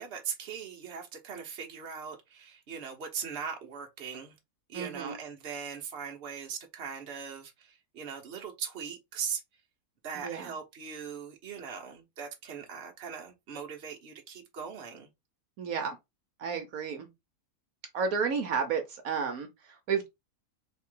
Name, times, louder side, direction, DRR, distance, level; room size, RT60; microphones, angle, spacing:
voice 1, 0.0-4.3 4.7-9.4 10.0-15.1, right 7 dB, 45° right, 1.2 m, -40 dB
voice 2, 4.7-5.2 10.1-10.5 15.6-16.0 16.4-17.1 17.9-20.1, right 6 dB, 70° right, 1.2 m, -32 dB
3.7 x 3.1 x 3.7 m
omnidirectional pair, 1.6 m